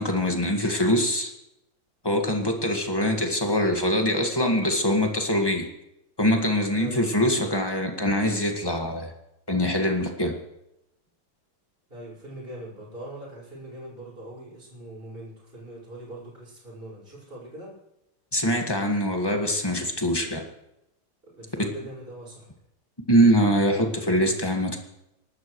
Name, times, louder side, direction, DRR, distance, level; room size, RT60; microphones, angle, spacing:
voice 1, 0.0-1.3 2.0-5.6 6.2-9.1 9.5-10.3 18.3-20.4 21.6-21.7 23.1-24.8, equal, 10° left, 2 dB, 1.6 m, -23 dB
voice 2, 6.8-7.1 11.9-17.7 21.2-22.5, right 1 dB, 25° right, -7 dB, 5.5 m, -42 dB
28.5 x 12.0 x 3.2 m, 0.85 s
omnidirectional pair, 2.2 m